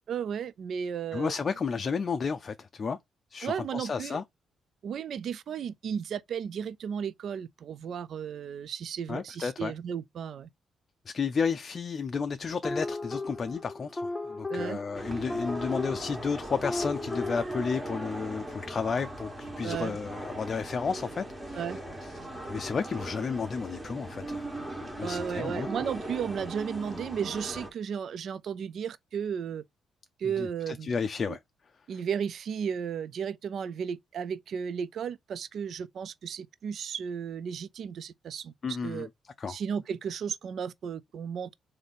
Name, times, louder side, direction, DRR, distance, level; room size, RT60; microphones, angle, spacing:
voice 1, 0.1-1.3 3.4-4.2 4.8-10.5 14.5-14.8 19.6-20.0 21.5-21.8 25.0-29.6 30.2-31.0 31.3-31.4 31.9-39.1 39.5-41.5, right 7 dB, 60° right, 0.3 m, -34 dB
voice 2, 1.1-3.0 3.3-4.2 9.1-9.7 11.1-21.6 22.5-24.4 24.8-25.7 30.4-31.4 38.6-39.1 39.4-39.6, left 5 dB, 40° left, 0.4 m, -32 dB
sound 1, 12.6-17.4, left 2 dB, 15° left, 0.8 m, -36 dB
sound 2, 14.9-27.7, right 1 dB, 15° right, 1.3 m, -39 dB
3.5 x 2.7 x 3.8 m
cardioid pair, 90°, 0 cm